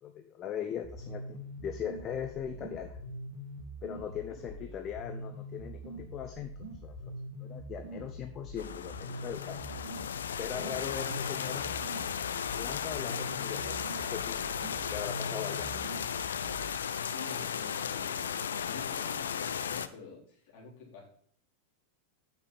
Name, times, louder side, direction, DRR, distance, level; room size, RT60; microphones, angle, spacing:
voice 1, 0.0-3.0 3.8-6.5 6.8-6.9 7.4-9.6 10.3-11.7 12.6-14.5 14.9-15.8, left 9 dB, 30° left, 6 dB, 0.7 m, -40 dB
sound 1, 0.8-16.8, right 1 dB, 55° right, 2.1 m, -44 dB
voice 2, 4.1-4.8 17.1-21.1, left 4 dB, 45° left, -4 dB, 3.8 m, -49 dB
sound 2, 8.6-19.9, left 7 dB, 65° left, 0.4 m, -35 dB
8.0 x 6.6 x 4.2 m, 0.63 s
figure-of-eight pair, 90°, 0 cm